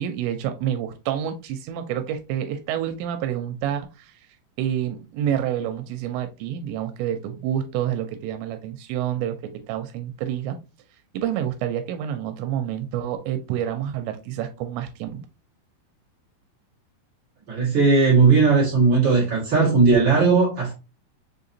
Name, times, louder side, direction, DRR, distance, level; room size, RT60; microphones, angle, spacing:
voice 1, 0.0-4.2 4.6-10.6 11.1-15.2, right 10 dB, 85° right, 2.8 m, -28 dB
voice 2, 17.5-20.7, right 4 dB, 55° right, 1.3 m, -17 dB
6.4 x 2.8 x 2.6 m
omnidirectional pair, 5.1 m